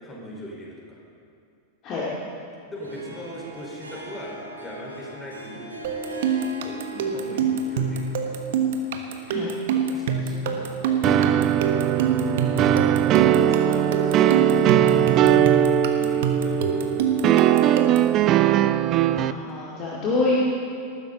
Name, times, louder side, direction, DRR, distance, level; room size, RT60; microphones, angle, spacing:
voice 1, 0.0-1.0 2.6-5.6 6.6-6.8 7.1-8.3 9.7-12.0 13.4-14.6 14.9-15.7 16.0-17.7, equal, 15° left, -4 dB, 4.7 m, -39 dB
Harp, 2.7-11.0, right 2 dB, 80° right, 2.3 m, -41 dB
sound 1, 5.8-18.2, right 5 dB, 55° right, 1.3 m, -26 dB
sound 2, 11.0-19.3, right 11 dB, 35° right, 0.5 m, -20 dB
voice 2, 19.1-20.3, left 3 dB, 35° left, -5 dB, 2.4 m, -27 dB
19.5 x 14.5 x 4.1 m, 2.5 s
figure-of-eight pair, 90°, 0 cm